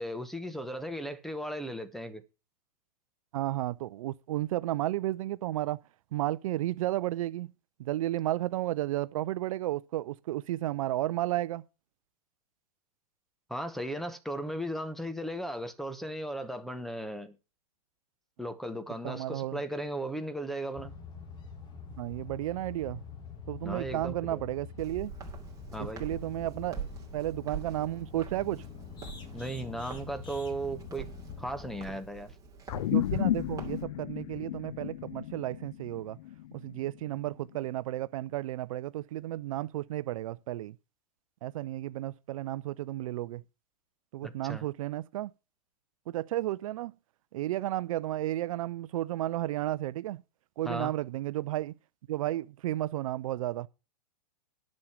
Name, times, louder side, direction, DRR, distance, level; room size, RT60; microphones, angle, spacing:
voice 1, 0.0-2.2 13.5-17.4 18.4-20.9 23.6-24.4 25.7-26.1 29.3-31.1 31.4-32.3 44.2-44.6 50.6-50.9, right 1 dB, ahead, 1.0 m, -36 dB
voice 2, 3.3-5.8 6.1-7.5 7.8-11.6 19.0-19.6 22.0-23.0 23.5-25.1 26.0-26.9 27.1-28.6 32.9-36.2 36.6-40.7 41.4-43.4 44.1-45.3 46.1-46.9 47.3-50.2 50.6-51.7 52.1-53.7, right 14 dB, 55° right, 0.5 m, -33 dB
sound 1, 20.7-32.0, left 7 dB, 20° left, 2.0 m, -45 dB
Walk footsteps, 24.8-33.8, right 7 dB, 15° right, 2.6 m, -45 dB
sound 2, 32.7-37.4, left 13 dB, 60° left, 0.7 m, -33 dB
10.5 x 6.3 x 7.2 m
hypercardioid pair, 135°, 21 cm